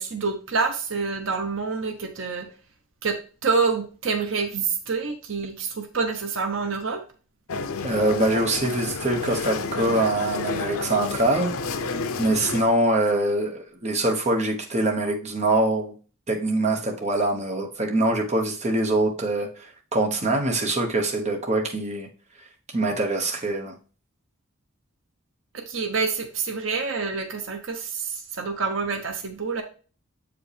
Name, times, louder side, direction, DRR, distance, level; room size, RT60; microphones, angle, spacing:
voice 1, 0.0-2.5 3.0-3.2 3.4-7.0 25.5-29.6, right 4 dB, 65° right, 0.9 m, -27 dB
sound 1, 7.5-12.6, left 4 dB, 90° left, 0.6 m, -30 dB
voice 2, 7.8-11.5 12.2-15.9 16.3-22.1 22.7-23.7, right 2 dB, 35° right, 1.1 m, -24 dB
7.5 x 4.9 x 3.4 m
head